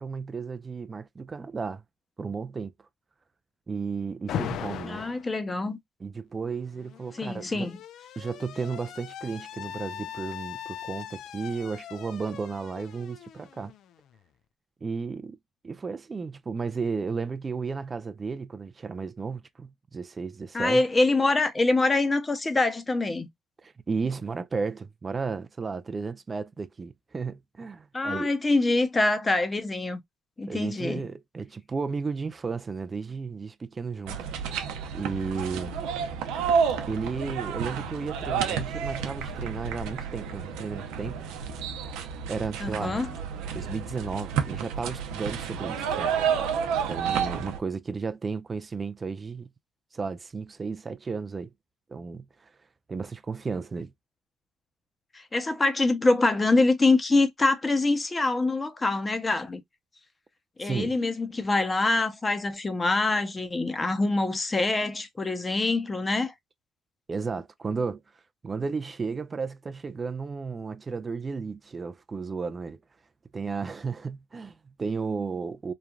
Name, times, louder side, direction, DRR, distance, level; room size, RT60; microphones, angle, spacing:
voice 1, 0.0-1.8 2.2-2.9 3.7-5.0 6.0-7.7 8.2-13.7 14.8-15.4 15.6-20.8 23.6-28.3 30.5-35.8 36.9-41.3 42.3-43.0 43.5-46.2 46.9-49.5 49.9-51.5 51.9-52.5 52.9-53.9 60.6-60.9 67.1-72.8 73.3-75.7, right 5 dB, 30° right, 0.3 m, -34 dB
Alarm, 4.3-5.3 6.5-14.2, left 10 dB, 70° left, 0.4 m, -39 dB
voice 2, 4.8-5.8 7.2-7.8 20.5-23.3 27.9-30.0 30.4-31.1 42.6-43.1 55.1-59.6 60.6-66.3, left 2 dB, 25° left, 0.7 m, -25 dB
sound 1, 34.1-47.6, right 7 dB, 90° right, 0.6 m, -30 dB
3.0 x 2.4 x 2.3 m
cardioid pair, 85°, 0 cm